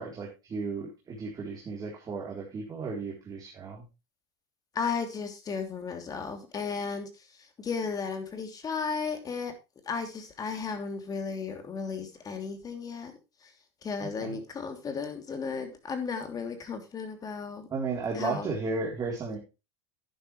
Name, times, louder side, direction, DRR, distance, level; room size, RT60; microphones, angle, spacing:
voice 1, 0.0-3.8 14.0-14.4 17.7-19.4, right 4 dB, 25° right, -2 dB, 3.6 m, -34 dB
voice 2, 4.7-9.5 9.8-13.1 13.4-13.5 13.8-17.7 18.1-18.5, left 5 dB, 25° left, 6 dB, 3.0 m, -34 dB
11.5 x 9.9 x 3.2 m, 0.27 s
supercardioid pair, 115°, 14 cm